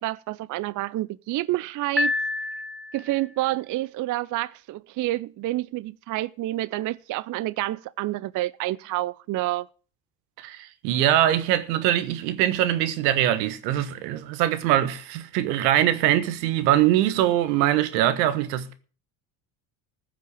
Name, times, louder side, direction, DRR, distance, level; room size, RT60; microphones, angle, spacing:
voice 1, 0.0-2.1 2.9-9.7, right 16 dB, 40° right, 0.5 m, -28 dB
Piano, 2.0-3.3, left 3 dB, ahead, 1.6 m, -28 dB
voice 2, 10.4-18.7, right 12 dB, 80° right, 1.5 m, -22 dB
15.0 x 6.0 x 8.3 m
supercardioid pair, 90°, 48 cm